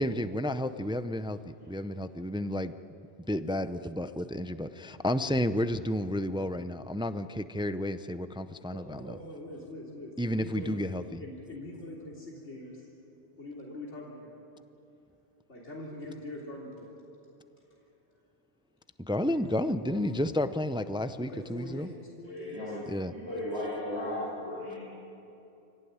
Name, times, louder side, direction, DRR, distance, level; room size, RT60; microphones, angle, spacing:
voice 1, 0.0-2.8 3.3-9.2 10.2-11.2 19.0-21.9 22.9-23.1, left 1 dB, 5° right, 11 dB, 0.4 m, -31 dB
voice 2, 8.7-10.7 11.2-12.8 13.4-14.3 15.5-16.9 21.2-22.8, left 1 dB, 90° left, -4 dB, 3.7 m, -43 dB
voice 3, 22.2-24.8, left 1 dB, 70° left, -8 dB, 6.9 m, -36 dB
26.5 x 17.5 x 9.6 m, 2.9 s
omnidirectional pair, 1.1 m